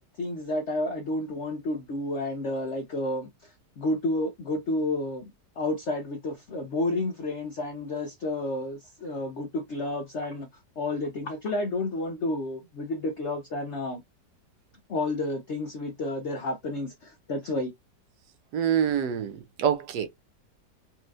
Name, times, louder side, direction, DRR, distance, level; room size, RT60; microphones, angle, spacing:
voice 1, 0.0-5.2 5.6-10.5 10.8-14.0 14.9-17.7, left 2 dB, 70° left, 0.6 m, -31 dB
voice 2, 18.5-20.1, right 9 dB, 70° right, 1.1 m, -26 dB
4.2 x 2.3 x 2.6 m
omnidirectional pair, 2.0 m